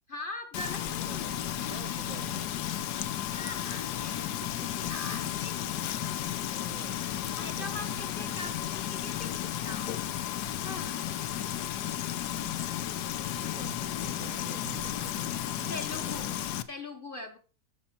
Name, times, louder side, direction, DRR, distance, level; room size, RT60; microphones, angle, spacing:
voice 1, 0.1-1.4 3.3-4.3 4.7-5.5 7.2-10.3 10.6-11.0 15.7-16.4 16.7-17.4, left 2 dB, 35° left, 1.3 m, -42 dB
Frying (food), 0.5-16.6, left 11 dB, 85° left, 1.3 m, -33 dB
voice 2, 0.8-2.5 3.9-4.2 4.6-4.9 6.0-8.7 12.9-16.2, right 9 dB, 65° right, 0.9 m, -49 dB
12.5 x 7.5 x 4.3 m
omnidirectional pair, 1.7 m